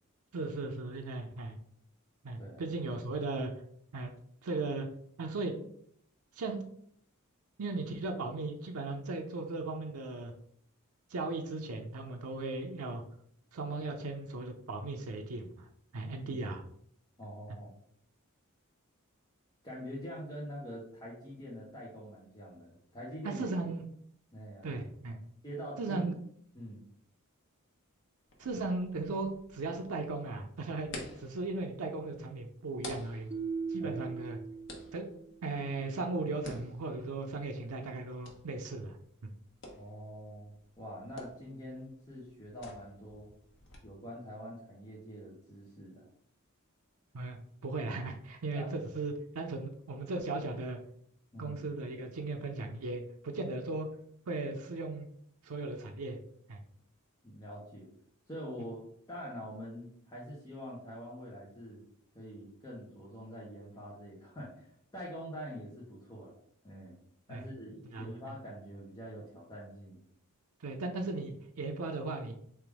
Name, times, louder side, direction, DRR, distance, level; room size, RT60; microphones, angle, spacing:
voice 1, 0.3-1.6 2.2-3.5 3.9-4.1 4.4-4.9 5.2-5.6 6.4-6.6 7.6-10.3 11.1-13.0 13.5-15.7 15.9-16.6 23.2-23.9 24.6-25.3 25.8-26.2 28.4-30.9 31.2-33.3 33.7-34.4 34.9-35.1 35.4-39.0 39.2-39.3 47.1-50.8 51.4-53.9 54.3-55.1 55.4-56.2 56.5-56.6 67.3-67.4 67.9-68.1 70.6-72.3, right 3 dB, 80° right, 2 dB, 0.6 m, -37 dB
voice 2, 17.2-17.7 19.6-23.5 24.3-24.7 25.4-26.1 26.5-26.8 33.8-34.0 39.8-43.3 43.8-46.0 48.5-48.7 51.3-51.6 57.2-57.9 58.3-61.8 62.1-66.3 66.6-67.0 67.3-70.0, equal, 20° left, -7 dB, 1.1 m, -45 dB
sound 1, 28.3-43.8, left 2 dB, 55° left, 1.0 m, -52 dB
sound 2, 33.3-35.5, right 5 dB, 25° right, 0.4 m, -39 dB
3.5 x 2.9 x 4.8 m, 0.66 s
head